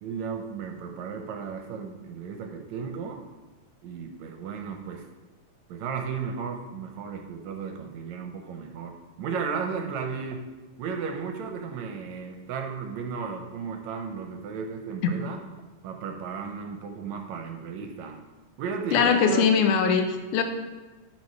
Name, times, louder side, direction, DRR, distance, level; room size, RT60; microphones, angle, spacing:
voice 1, 0.0-3.3 3.8-5.1 5.7-10.5 10.8-15.4 15.8-18.2 18.6-19.5, right 6 dB, 75° right, 4 dB, 1.9 m, -34 dB
voice 2, 18.9-20.4, left 6 dB, 85° left, 6 dB, 2.3 m, -21 dB
10.5 x 5.8 x 4.6 m, 1.2 s
omnidirectional pair, 3.5 m